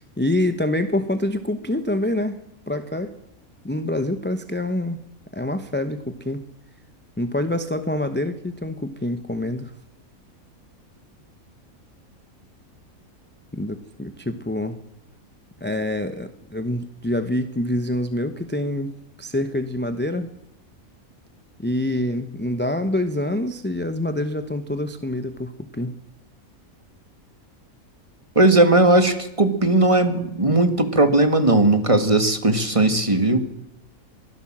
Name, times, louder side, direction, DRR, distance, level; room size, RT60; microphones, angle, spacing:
voice 1, 0.0-2.4 2.7-3.1 3.6-5.0 5.3-6.4 7.2-9.7 13.5-14.8 15.6-18.9 19.2-20.3 21.6-25.9, left 1 dB, 10° left, 9 dB, 0.8 m, -26 dB
voice 2, 28.4-33.4, right 2 dB, 25° right, 8 dB, 1.8 m, -17 dB
23.5 x 16.5 x 7.4 m, 0.82 s
omnidirectional pair, 1.5 m